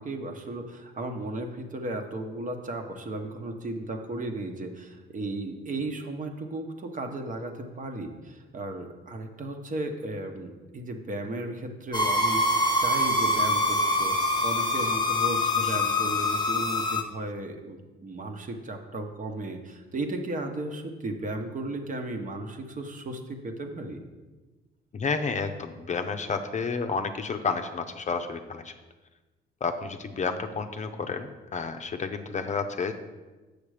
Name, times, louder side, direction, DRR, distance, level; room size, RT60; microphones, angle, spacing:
voice 1, 0.0-24.0, right 2 dB, 40° right, 5 dB, 1.1 m, -35 dB
sound 1, 11.9-17.0, left 1 dB, 20° left, 1.0 m, -25 dB
voice 2, 24.9-28.7 29.6-32.9, left 5 dB, 35° left, 7 dB, 0.7 m, -31 dB
7.0 x 6.6 x 5.0 m, 1.2 s
cardioid pair, 90°, 20 cm